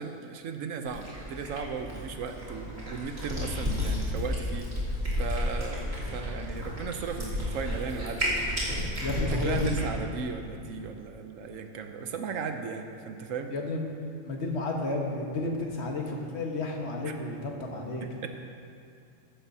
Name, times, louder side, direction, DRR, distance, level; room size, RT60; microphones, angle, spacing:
voice 1, 0.0-4.7 5.2-8.4 9.3-13.5 17.0-17.2 18.0-18.3, right 5 dB, 75° right, 6 dB, 1.1 m, -36 dB
Cat, 0.9-9.8, left 1 dB, 50° right, 2.8 m, -32 dB
voice 2, 9.0-10.0 13.5-13.8 14.2-18.1, left 2 dB, 55° left, 0 dB, 1.5 m, -32 dB
14.5 x 11.5 x 2.8 m, 2.5 s
omnidirectional pair, 1.4 m